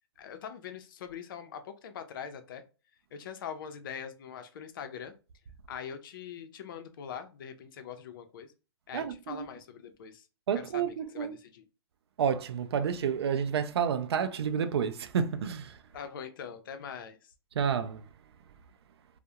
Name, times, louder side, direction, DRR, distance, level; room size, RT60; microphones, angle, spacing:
voice 1, 0.2-2.7 3.1-5.2 5.7-8.5 8.9-10.3 10.5-11.6 15.9-17.3, left 7 dB, 55° left, 0.5 m, -43 dB
voice 2, 8.9-9.5 10.5-11.3 12.2-15.8 17.5-18.0, right 7 dB, 75° right, 0.4 m, -30 dB
2.3 x 2.0 x 2.7 m
hypercardioid pair, 145°, 14 cm